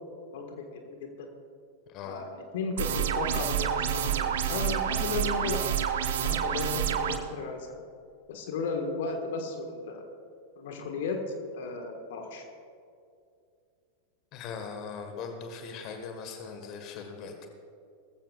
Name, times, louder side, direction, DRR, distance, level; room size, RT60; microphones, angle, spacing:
voice 1, 0.3-1.3 2.0-5.8 6.2-7.8 8.3-10.0 10.6-11.2 11.5-12.4, left 4 dB, 55° left, 4 dB, 1.6 m, -35 dB
voice 2, 1.9-2.2 14.3-17.5, left 5 dB, 40° left, 4 dB, 1.6 m, -40 dB
sound 1, 2.8-7.2, right 9 dB, 60° right, 0.8 m, -28 dB
20.0 x 15.0 x 2.4 m, 2.4 s
figure-of-eight pair, 90°, 0 cm